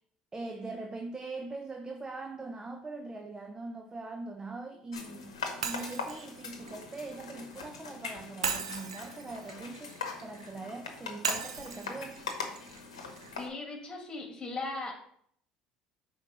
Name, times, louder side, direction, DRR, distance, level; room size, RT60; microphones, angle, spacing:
voice 1, 0.3-5.3 5.6-12.2, right 3 dB, 20° right, 0.7 m, -42 dB
sound 1, 4.9-13.5, left 5 dB, 85° left, 0.9 m, -41 dB
Shatter, 5.6-7.7 8.4-10.5 11.2-13.3, right 6 dB, 90° right, 0.5 m, -38 dB
voice 2, 13.4-14.9, left 3 dB, 25° left, 2.5 m, -38 dB
5.2 x 4.3 x 5.4 m
hypercardioid pair, 65°, 3 cm